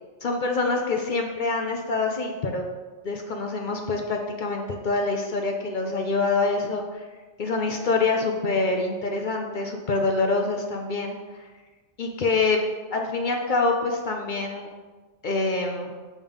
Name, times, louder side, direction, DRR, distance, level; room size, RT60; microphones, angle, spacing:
voice 1, 0.2-2.6 3.0-7.1 7.4-11.5 12.0-12.6 12.9-14.7 15.2-15.9, left 3 dB, 50° left, 2 dB, 0.7 m, -26 dB
6.2 x 3.6 x 5.3 m, 1.3 s
omnidirectional pair, 1.2 m